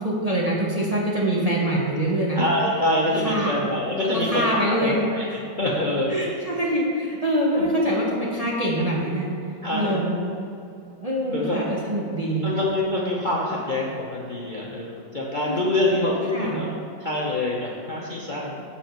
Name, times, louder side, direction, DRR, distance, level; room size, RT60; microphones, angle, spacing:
voice 1, 0.0-2.4 3.2-3.5 4.3-5.4 6.1-9.3 9.7-10.2 11.0-12.5 15.6-15.7 16.3-16.6, right 1 dB, 30° right, -5 dB, 0.8 m, -24 dB
voice 2, 2.3-5.2 5.6-6.1 7.5-7.7 9.6-10.1 11.3-11.6 12.4-16.7 17.0-18.5, left 1 dB, 40° left, -5 dB, 0.7 m, -25 dB
7.2 x 7.1 x 4.5 m, 2.6 s
omnidirectional pair, 1.9 m